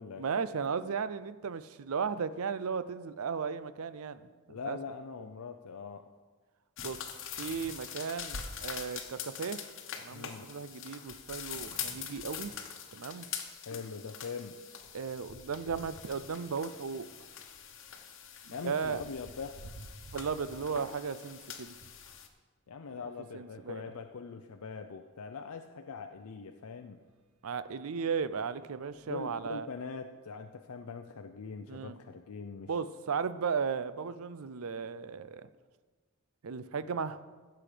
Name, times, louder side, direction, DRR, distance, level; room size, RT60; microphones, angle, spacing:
voice 1, 0.2-4.8 6.8-7.0 7.4-9.6 10.0-12.5 12.9-13.2 14.9-17.1 18.5-19.0 20.1-21.7 23.3-23.8 27.4-29.7 31.7-32.0 32.7-35.5 36.4-37.2, right 6 dB, 70° right, 14 dB, 0.5 m, -35 dB
voice 2, 4.5-6.1 10.1-10.5 13.7-14.6 18.5-19.6 22.7-27.0 29.0-32.7 37.0-37.1, left 5 dB, 80° left, 6 dB, 0.5 m, -42 dB
sound 1, 6.8-22.3, left 8 dB, 60° left, 1.1 m, -44 dB
sound 2, 13.4-22.2 22.9-24.2 24.9-25.0 25.3-25.4 27.0-27.2 27.8-28.0 28.5-29.7, right 2 dB, 90° right, 0.9 m, -56 dB
16.0 x 7.0 x 5.0 m, 1.4 s
head